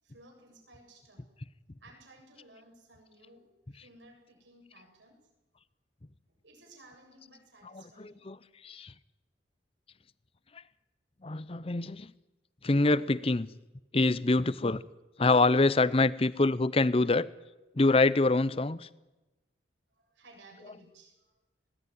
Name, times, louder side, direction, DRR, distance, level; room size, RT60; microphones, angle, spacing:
voice 1, 0.0-1.3 1.8-5.2 6.3-8.2 19.9-21.3, right 1 dB, 85° right, 1 dB, 7.5 m, -57 dB
voice 2, 7.7-8.4 8.6-8.9 11.2-12.1 12.6-13.5 13.9-14.8 15.2-17.3 17.7-18.9, left 2 dB, 30° left, 18 dB, 0.7 m, -25 dB
21.0 x 17.5 x 9.4 m, 1.1 s
head